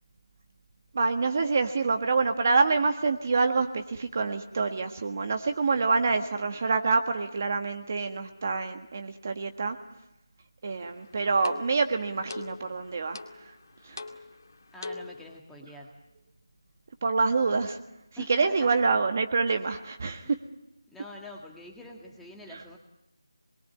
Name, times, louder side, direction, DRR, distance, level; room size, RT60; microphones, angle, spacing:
voice 1, 0.9-9.8 10.6-13.2 13.8-14.0 17.0-17.8 18.3-20.4, right 4 dB, 30° right, 6 dB, 1.6 m, -26 dB
sound 1, 10.8-15.4, left 3 dB, 45° left, 2.3 m, -43 dB
voice 2, 14.7-15.9 18.2-18.7 20.2-20.4 20.9-22.8, left 1 dB, ahead, -2 dB, 1.9 m, -45 dB
27.0 x 22.0 x 9.7 m, 0.89 s
figure-of-eight pair, 170°, 2 cm